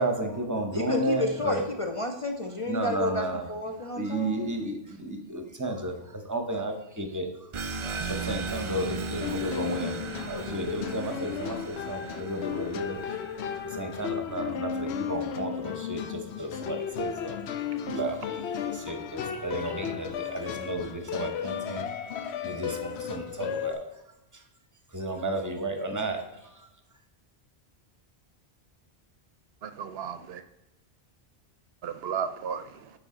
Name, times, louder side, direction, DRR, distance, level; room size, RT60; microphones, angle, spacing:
voice 1, 0.0-1.7 2.6-3.5 3.8-7.5 8.1-13.0 13.6-17.4 17.9-21.9 22.4-23.8 24.3-24.4 24.9-26.7, right 1 dB, 20° right, 0.8 m, -33 dB
voice 2, 0.7-4.5, left 2 dB, 40° left, 0.5 m, -31 dB
sound 1, 7.5-13.8, right 4 dB, 50° right, 0.4 m, -37 dB
sound 2, 9.2-23.7, left 8 dB, 85° left, 0.9 m, -34 dB
voice 3, 29.6-30.4 31.8-32.9, right 7 dB, 70° right, 0.8 m, -34 dB
9.8 x 3.8 x 3.8 m
omnidirectional pair, 1.1 m